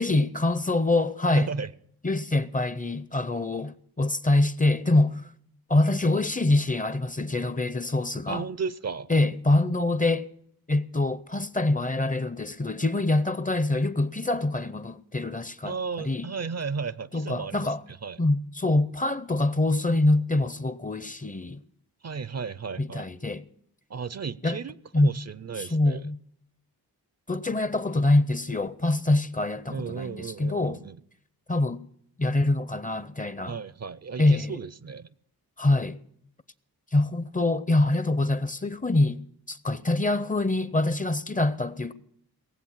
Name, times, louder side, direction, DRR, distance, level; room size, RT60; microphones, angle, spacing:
voice 1, 0.0-1.5 2.0-5.2 5.7-8.5 9.1-10.3 10.7-16.3 17.1-17.8 18.2-21.6 22.8-23.4 24.4-24.6 24.9-25.1 25.6-26.2 27.3-30.8 31.5-31.8 32.2-33.6 34.2-34.6 35.6-36.0 36.9-39.2 39.5-41.9, left 2 dB, 20° left, 0.5 m, -25 dB
voice 2, 1.4-1.7 8.3-9.1 15.6-17.7 18.0-18.2 22.0-23.1 23.9-26.0 29.7-31.0 33.5-35.1, right 5 dB, 45° right, 0.5 m, -34 dB
17.5 x 7.9 x 7.2 m
wide cardioid pair, 90°, 37 cm